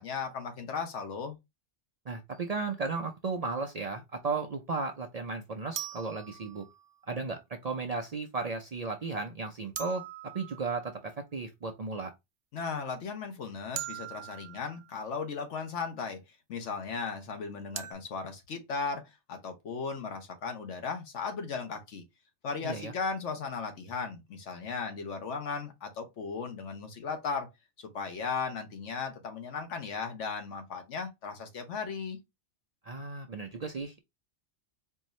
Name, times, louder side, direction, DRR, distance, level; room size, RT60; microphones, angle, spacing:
voice 1, 0.0-1.4 12.5-16.2 16.5-22.0 22.4-27.5 27.8-32.2, left 5 dB, 85° left, 1.3 m, -36 dB
voice 2, 2.1-6.6 7.1-10.0 10.3-12.1 22.6-22.9 32.9-34.0, right 4 dB, 50° right, 0.5 m, -35 dB
sound 1, 2.3-2.5 5.8-7.0 9.8-11.1 13.8-15.0 17.8-17.9, right 11 dB, 90° right, 0.9 m, -41 dB
4.5 x 2.7 x 3.0 m
omnidirectional pair, 1.2 m